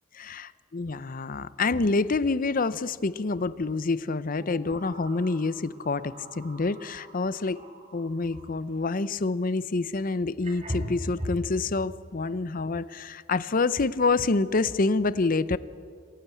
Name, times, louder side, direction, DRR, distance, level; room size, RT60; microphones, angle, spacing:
voice 1, 0.7-7.6 7.9-15.6, left 3 dB, 40° left, 16 dB, 0.6 m, -27 dB
sound 1, 0.9-1.0 1.3-1.5 3.3-3.5 4.4-8.7 9.9-10.0 10.4-11.5, equal, 30° right, 4.1 m, -40 dB
26.5 x 15.5 x 8.3 m, 2.2 s
head